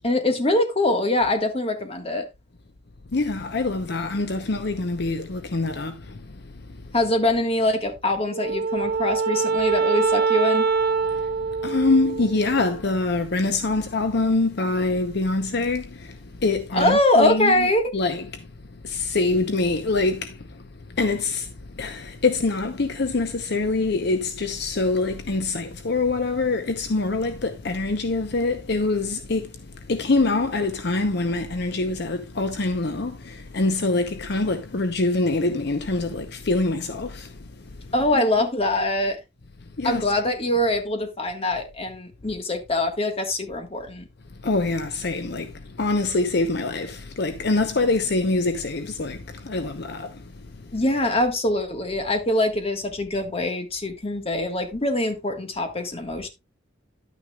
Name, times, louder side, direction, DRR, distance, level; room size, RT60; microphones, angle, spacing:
voice 1, 0.0-2.2 6.9-10.7 16.7-17.9 37.9-39.2 39.8-44.1 50.7-56.3, left 1 dB, 30° left, 1.6 m, -23 dB
voice 2, 3.1-6.4 11.1-11.3 11.6-18.5 18.8-20.6 21.0-29.6 29.9-37.4 37.8-37.9 39.8-40.0 44.4-50.3 50.6-50.7, left 3 dB, 60° left, 0.8 m, -25 dB
Wind instrument woodwind instrument, 8.3-12.8, right 4 dB, 50° right, 0.9 m, -24 dB
11.0 x 9.3 x 2.3 m
head